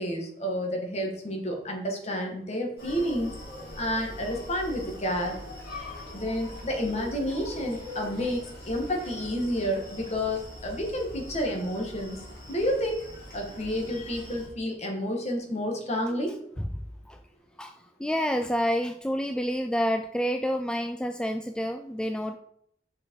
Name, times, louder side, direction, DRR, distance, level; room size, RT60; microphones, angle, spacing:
voice 1, 0.0-3.4 3.8-5.4 5.8-12.2 12.5-13.1 13.3-16.3, equal, 40° left, 1 dB, 1.8 m, -30 dB
Screaming, 2.8-14.5, left 1 dB, 60° left, 3.5 m, -42 dB
voice 2, 3.5-4.0 6.0-6.1 16.6-16.7 17.1-17.2 17.6-22.4, equal, 5° left, 6 dB, 0.3 m, -29 dB
6.4 x 6.0 x 4.7 m, 0.71 s
head